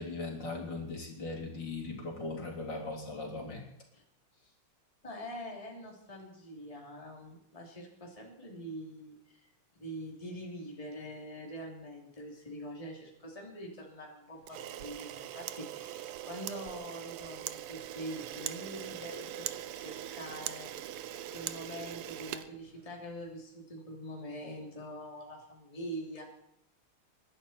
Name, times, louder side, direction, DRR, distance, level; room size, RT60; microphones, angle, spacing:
voice 1, 0.0-3.7, left 3 dB, 55° left, -2 dB, 4.2 m, -39 dB
voice 2, 5.0-9.4 9.7-20.7 21.3-26.2, equal, 15° left, -1 dB, 3.1 m, -44 dB
Camera, 14.4-23.2, right 12 dB, 90° right, 1.7 m, -41 dB
24.0 x 11.5 x 4.4 m, 0.79 s
omnidirectional pair, 2.4 m